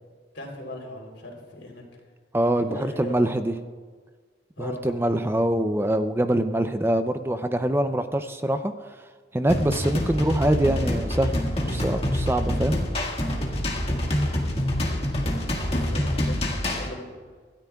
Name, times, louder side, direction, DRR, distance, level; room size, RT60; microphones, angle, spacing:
voice 1, 0.3-1.8 2.6-3.6 4.6-4.9 14.9-15.0 15.7-16.5 16.8-17.1, left 1 dB, 80° left, 0 dB, 3.4 m, -39 dB
voice 2, 2.3-3.5 4.6-8.7 9.3-11.4 11.7-12.8, right 1 dB, 15° right, 9 dB, 0.4 m, -24 dB
sound 1, 9.5-16.9, left 1 dB, 30° left, 1.7 m, -26 dB
26.0 x 13.0 x 2.3 m, 1.5 s
head